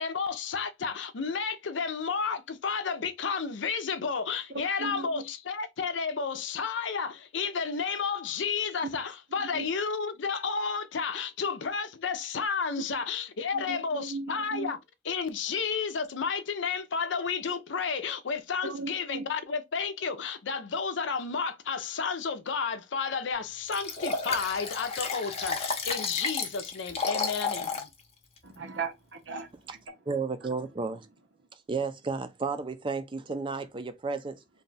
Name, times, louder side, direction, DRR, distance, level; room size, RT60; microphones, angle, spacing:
voice 1, 0.0-14.8 15.0-27.9, left 5 dB, 90° left, 0.6 m, -32 dB
voice 2, 4.5-5.2 9.5-9.6 13.5-14.7 18.6-19.2 28.4-29.5, right 4 dB, 85° right, 0.9 m, -37 dB
Liquid, 23.7-27.9 28.4-28.5, left 4 dB, 35° left, 0.6 m, -32 dB
voice 3, 30.1-31.1 31.7-34.4, right 4 dB, 30° right, 0.4 m, -32 dB
2.6 x 2.3 x 3.9 m
head